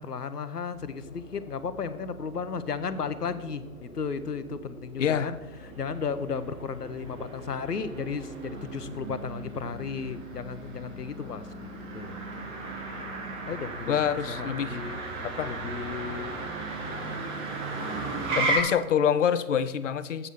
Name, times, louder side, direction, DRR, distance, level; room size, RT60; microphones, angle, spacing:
voice 1, 0.0-5.4 5.6-12.2 13.4-14.0 14.3-16.3, left 5 dB, 80° left, 13 dB, 0.9 m, -34 dB
sound 1, 0.7-17.0, equal, 10° left, 0.5 m, -47 dB
voice 2, 5.0-5.3 13.9-14.8 15.2-15.5 18.3-20.3, left 8 dB, 50° left, 14 dB, 0.7 m, -26 dB
Motor vehicle (road), 5.5-18.6, right 3 dB, 10° right, 0.9 m, -35 dB
8.1 x 5.7 x 7.0 m, 1.1 s
figure-of-eight pair, 130°, 46 cm